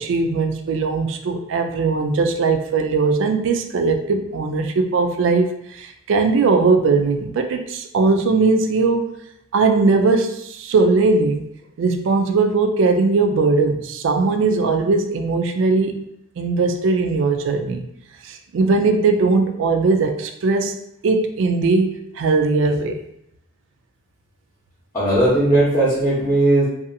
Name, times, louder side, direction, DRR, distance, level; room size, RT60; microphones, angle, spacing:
voice 1, 0.0-9.1 9.5-11.5 11.8-16.0 16.4-17.8 18.2-20.8 21.0-23.0, right 3 dB, 65° right, 6 dB, 0.3 m, -19 dB
voice 2, 24.9-26.6, right 1 dB, 15° left, -12 dB, 0.6 m, -17 dB
2.7 x 2.3 x 2.5 m, 0.77 s
head